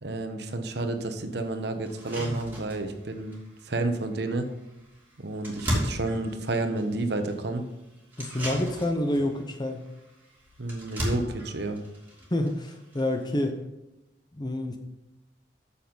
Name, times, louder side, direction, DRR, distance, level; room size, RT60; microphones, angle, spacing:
voice 1, 0.0-4.5 5.2-7.6 10.6-11.8, right 2 dB, 65° right, 7 dB, 1.0 m, -30 dB
sound 1, 0.8-0.9 1.4-1.5 1.8-13.5, equal, 10° right, 2.7 m, -37 dB
voice 2, 8.2-9.9 12.3-13.6 14.3-14.8, left 1 dB, 25° left, 5 dB, 0.8 m, -28 dB
8.8 x 7.1 x 4.0 m, 0.96 s
head